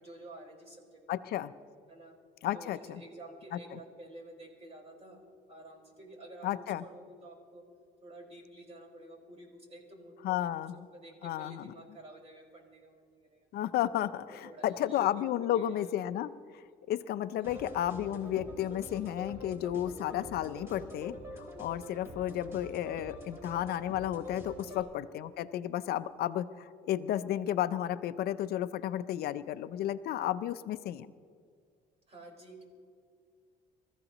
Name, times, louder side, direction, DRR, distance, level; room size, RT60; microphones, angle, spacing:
voice 1, 0.0-1.2 1.9-2.2 2.5-7.7 8.0-13.5 14.2-15.2 15.5-15.9 17.4-17.7 24.6-24.9 32.1-32.6, right 1 dB, 40° right, 0 dB, 4.7 m, -51 dB
voice 2, 1.1-1.5 2.4-3.0 6.4-6.8 10.2-10.8 11.2-11.6 13.5-16.6 16.9-31.1, left 12 dB, 70° left, 13 dB, 0.6 m, -33 dB
sound 1, 17.4-24.8, left 1 dB, 15° right, 3.9 m, -45 dB
25.0 x 14.5 x 3.0 m, 2.1 s
cardioid pair, 110°, 17 cm